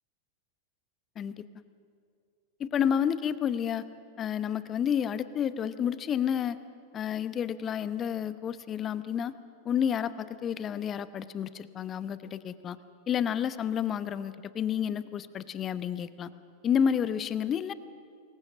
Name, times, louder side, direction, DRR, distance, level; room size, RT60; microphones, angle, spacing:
voice 1, 2.6-3.8 4.2-6.6 6.9-9.3 9.6-12.8 13.1-16.3 16.6-17.7, left 8 dB, 25° left, 15 dB, 0.9 m, -30 dB
25.5 x 21.0 x 6.3 m, 2.3 s
figure-of-eight pair, 90°, 0 cm